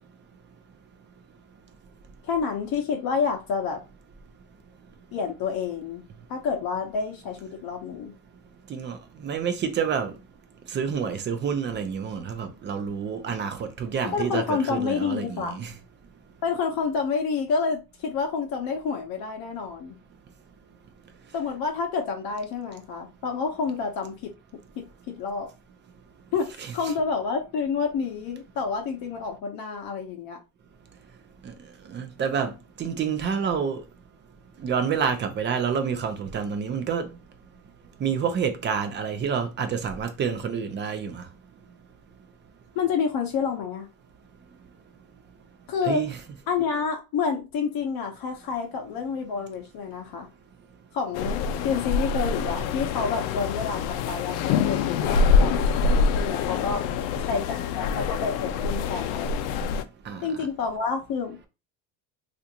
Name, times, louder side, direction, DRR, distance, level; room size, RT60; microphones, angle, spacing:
voice 1, 2.2-3.8 5.1-6.0 6.3-8.1 14.0-15.6 16.4-20.0 21.3-24.3 24.8-25.5 26.3-26.5 26.7-30.4 42.8-43.9 45.7-46.0 46.5-50.3 50.9-56.8 57.2-59.6 60.2-61.4, left 5 dB, 50° left, 0.8 m, -29 dB
voice 2, 8.7-10.1 10.7-15.7 26.6-26.7 31.4-31.5 31.9-32.5 32.8-33.8 34.6-37.1 38.0-41.2 45.8-46.2 60.1-60.3, right 6 dB, 25° right, 0.4 m, -28 dB
sound 1, 51.1-59.8, left 5 dB, 85° left, 0.5 m, -25 dB
3.4 x 2.6 x 2.8 m
cardioid pair, 135°, 45 cm